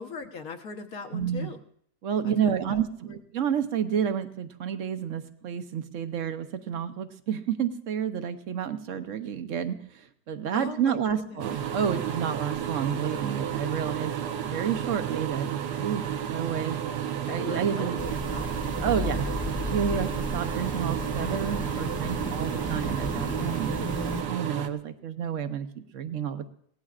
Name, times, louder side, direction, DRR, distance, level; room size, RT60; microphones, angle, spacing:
voice 1, 0.0-1.6 2.2-3.2 10.5-11.5 17.3-18.5, left 5 dB, 60° left, 5 dB, 1.5 m, -40 dB
voice 2, 1.1-1.5 2.0-15.5 15.8-16.8 17.3-18.0 18.8-26.5, right 8 dB, 55° right, 9 dB, 1.1 m, -30 dB
sound 1, 11.4-24.7, right 9 dB, 80° right, 1.4 m, -32 dB
sound 2, 18.0-24.2, left 1 dB, 10° left, 0.5 m, -34 dB
23.0 x 17.5 x 2.5 m, 0.66 s
omnidirectional pair, 1.8 m